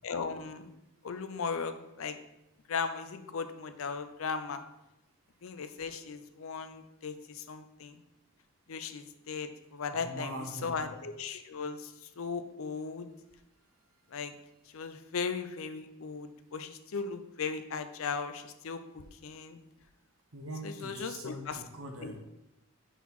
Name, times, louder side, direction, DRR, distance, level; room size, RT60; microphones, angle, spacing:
voice 1, 0.0-0.7 1.0-2.2 2.7-4.6 5.4-8.0 8.7-13.1 14.1-14.3 14.7-19.6 20.6-21.6 22.0-22.1, left 5 dB, 75° left, 9 dB, 0.5 m, -37 dB
voice 2, 9.9-10.9 20.3-22.2, right 1 dB, 80° right, 2 dB, 1.1 m, -42 dB
4.7 x 4.2 x 5.3 m, 0.91 s
head